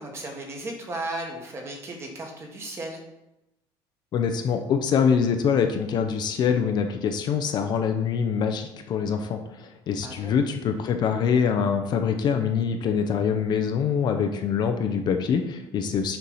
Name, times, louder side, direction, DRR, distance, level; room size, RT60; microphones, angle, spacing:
voice 1, 0.0-3.0 10.0-10.3, right 2 dB, 25° right, 1 dB, 1.5 m, -35 dB
voice 2, 4.1-16.2, left 6 dB, 45° left, 6 dB, 0.7 m, -24 dB
6.9 x 4.6 x 5.5 m, 0.92 s
cardioid pair, 155°, 11 cm